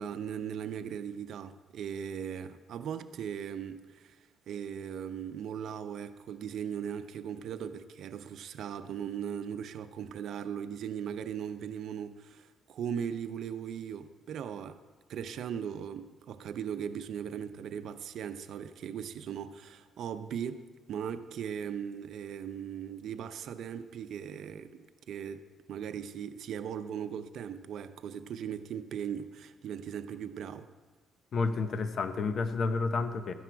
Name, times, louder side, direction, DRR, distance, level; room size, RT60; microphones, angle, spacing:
voice 1, 0.0-4.2 4.5-14.8 15.1-20.6 20.9-24.8 25.1-30.7, right 8 dB, 70° right, 0.6 m, -38 dB
voice 2, 31.3-33.3, left 4 dB, 55° left, 0.8 m, -30 dB
13.0 x 10.0 x 4.6 m
cardioid pair, 90°, 0 cm